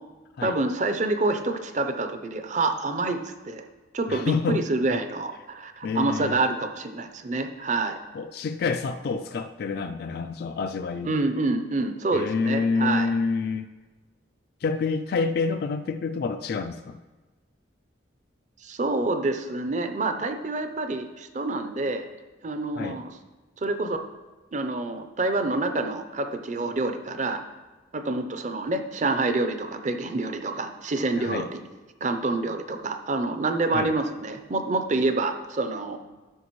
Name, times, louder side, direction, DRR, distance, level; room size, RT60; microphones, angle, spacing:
voice 1, 0.4-3.7 3.9-8.0 11.0-13.1 18.6-22.1 22.4-23.2 23.6-24.0 24.5-27.4 27.9-31.6 32.0-36.0, right 2 dB, 40° right, 7 dB, 0.6 m, -27 dB
voice 2, 4.1-4.6 5.8-6.4 8.1-11.1 12.1-13.7 14.6-17.0 22.7-23.0 31.2-31.5 33.7-33.9, left 4 dB, 55° left, 7 dB, 0.3 m, -28 dB
12.5 x 5.8 x 3.1 m, 1.2 s
head